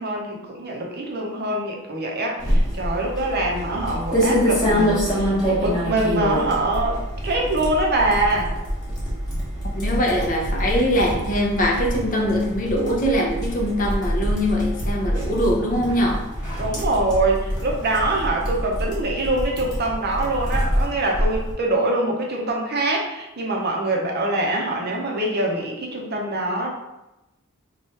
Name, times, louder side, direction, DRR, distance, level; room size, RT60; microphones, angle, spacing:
voice 1, 0.0-8.5 16.6-26.7, right 2 dB, 45° right, 0 dB, 0.6 m, -24 dB
sound 1, 2.4-21.5, equal, 20° left, 1.1 m, -26 dB
voice 2, 9.7-16.3, equal, 40° left, 0 dB, 0.5 m, -22 dB
3.1 x 2.3 x 4.2 m, 0.95 s
head